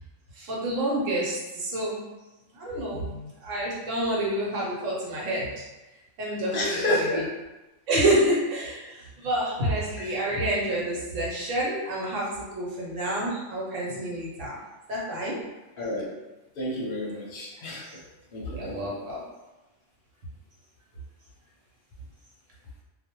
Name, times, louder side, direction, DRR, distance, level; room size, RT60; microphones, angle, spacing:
voice 1, 0.4-2.0 2.5-5.5 6.2-7.1 7.9-14.6 14.9-15.4 18.5-19.2, right 1 dB, 85° right, -4 dB, 1.2 m, -28 dB
voice 2, 6.5-7.3 10.0-10.2 15.8-16.1 16.6-18.0 18.3-18.9, left 1 dB, 55° left, -2 dB, 0.7 m, -30 dB
2.4 x 2.1 x 2.9 m, 1.1 s
omnidirectional pair, 1.3 m